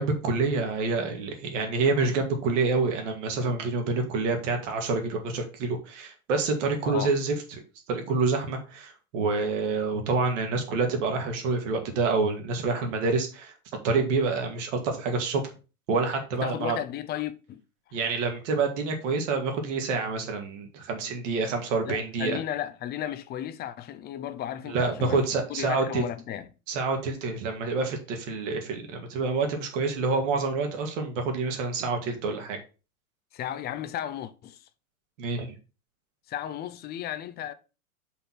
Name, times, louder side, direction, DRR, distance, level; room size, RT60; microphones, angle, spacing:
voice 1, 0.0-7.3 7.9-13.5 13.8-15.4 15.9-16.8 17.9-22.4 24.7-26.0 26.7-32.6 35.2-35.5, right 4 dB, 55° right, 2.3 m, -27 dB
voice 2, 6.8-7.2 16.4-17.6 21.8-26.5 33.3-34.7 36.3-37.5, left 11 dB, 25° left, 0.6 m, -34 dB
5.5 x 4.1 x 5.9 m
hypercardioid pair, 100°, 43 cm